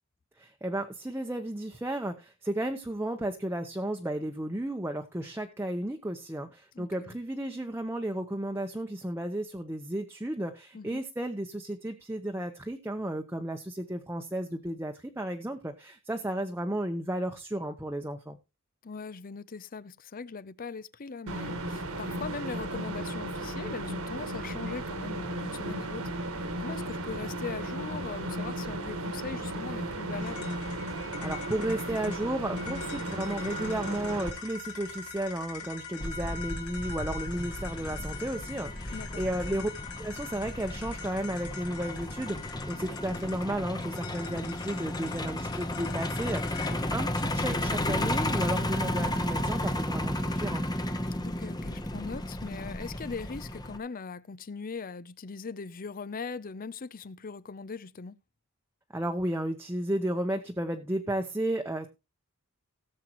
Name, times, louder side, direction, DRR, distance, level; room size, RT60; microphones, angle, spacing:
voice 1, 0.4-18.4 31.2-39.7 40.0-50.6 58.9-61.9, right 1 dB, 10° right, 0.8 m, -33 dB
voice 2, 6.7-7.2 10.7-11.0 18.8-30.6 38.9-39.4 46.9-47.0 51.2-58.2, left 4 dB, 40° left, 0.6 m, -40 dB
sound 1, 21.3-34.3, right 1 dB, 70° right, 1.6 m, -35 dB
sound 2, 30.2-46.8, left 5 dB, 90° left, 3.6 m, -43 dB
Truck, 36.0-53.8, left 1 dB, 20° left, 0.9 m, -33 dB
18.0 x 7.6 x 3.1 m
head